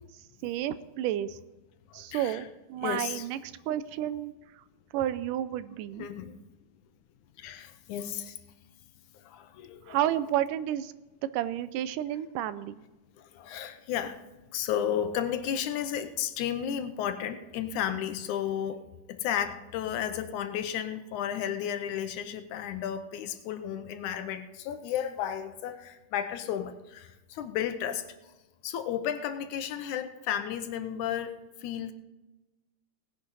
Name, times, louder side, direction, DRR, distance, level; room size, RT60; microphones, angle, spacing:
voice 1, 0.4-1.4 1.9-4.6 4.9-6.1 9.9-10.9 11.3-12.8, right 12 dB, 85° right, 14 dB, 2.1 m, -31 dB
voice 2, 1.9-2.4 2.8-3.3 6.0-6.3 7.4-8.4 9.1-10.0 13.2-14.2 14.5-18.8 19.1-28.3 28.6-31.3 31.6-31.9, left 9 dB, 75° left, 8 dB, 2.1 m, -33 dB
18.0 x 10.5 x 4.1 m, 1.1 s
omnidirectional pair, 3.7 m